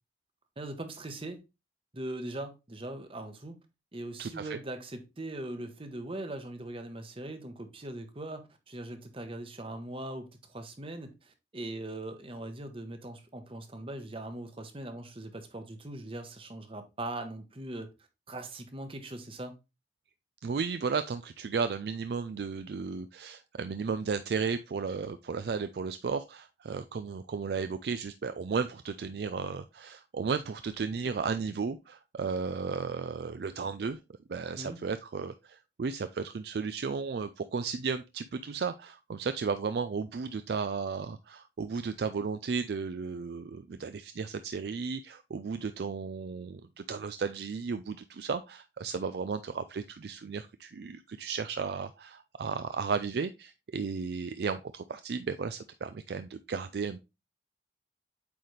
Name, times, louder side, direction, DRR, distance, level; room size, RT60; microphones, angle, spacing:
voice 1, 0.6-1.4 1.9-3.5 3.9-17.9 18.3-19.6 34.5-34.8, right 1 dB, 30° right, 1.0 m, -40 dB
voice 2, 4.2-4.6 20.4-34.0 34.3-57.0, right 5 dB, 60° right, 0.4 m, -34 dB
8.4 x 4.0 x 3.2 m
head